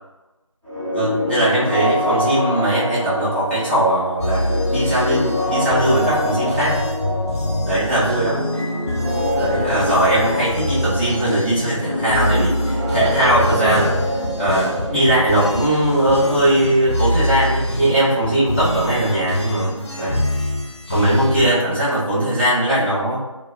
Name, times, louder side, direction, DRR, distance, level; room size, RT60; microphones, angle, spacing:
sound 1, 0.6-18.3, left 1 dB, 5° right, 1.1 m, -26 dB
voice 1, 0.9-6.9 7.6-8.4 9.4-13.9 14.4-20.3 20.9-23.2, right 1 dB, 20° left, -14 dB, 0.8 m, -19 dB
sound 2, 4.2-21.5, left 1 dB, 55° left, 0.4 m, -25 dB
2.7 x 2.0 x 2.3 m, 1.1 s
figure-of-eight pair, 170°, 17 cm